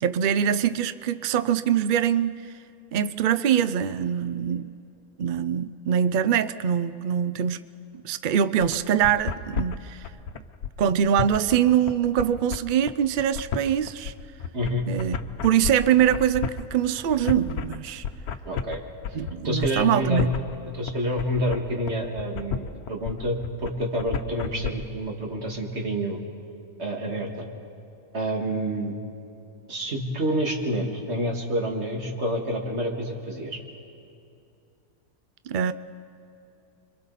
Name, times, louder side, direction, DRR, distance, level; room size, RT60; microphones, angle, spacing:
voice 1, 0.0-2.4 2.9-4.7 5.2-7.6 8.0-10.0 10.8-14.1 14.9-15.2 15.4-18.0 19.1-20.3 35.5-35.7, right 9 dB, 85° right, 13 dB, 0.4 m, -23 dB
sound 1, 8.6-24.7, left 7 dB, 85° left, 1.3 m, -32 dB
voice 2, 14.5-14.8 18.5-18.8 19.4-20.3 20.7-26.2 26.8-27.5 28.1-29.0 29.7-33.6, equal, 45° right, 1 dB, 2.4 m, -28 dB
29.5 x 23.5 x 4.1 m, 2.7 s
omnidirectional pair, 1.5 m